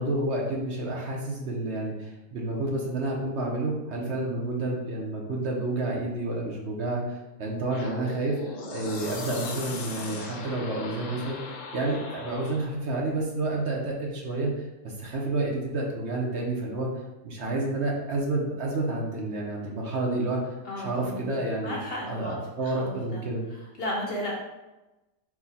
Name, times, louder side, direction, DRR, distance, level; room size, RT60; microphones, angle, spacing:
voice 1, 0.0-8.4 8.7-14.5 14.8-16.9 17.2-21.8 22.1-23.5, right 2 dB, 60° right, -2 dB, 0.9 m, -30 dB
sound 1, 7.7-12.8, left 3 dB, 85° left, 1.1 m, -38 dB
voice 2, 20.6-21.4 21.6-22.4 22.6-23.2 23.8-24.3, left 1 dB, 55° left, -2 dB, 0.7 m, -34 dB
4.6 x 2.1 x 4.0 m, 1.0 s
omnidirectional pair, 1.5 m